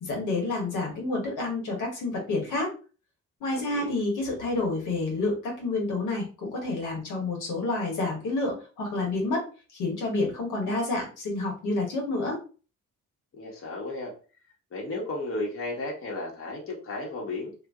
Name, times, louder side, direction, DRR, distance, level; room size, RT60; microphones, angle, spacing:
voice 1, 0.0-2.7 3.4-9.4 9.7-12.4, left 2 dB, 85° left, -1 dB, 1.5 m, -29 dB
voice 2, 3.5-4.0 13.3-14.1 14.7-17.5, left 2 dB, 45° left, -2 dB, 1.5 m, -34 dB
2.7 x 2.7 x 3.6 m, 0.36 s
cardioid pair, 90°, 30 cm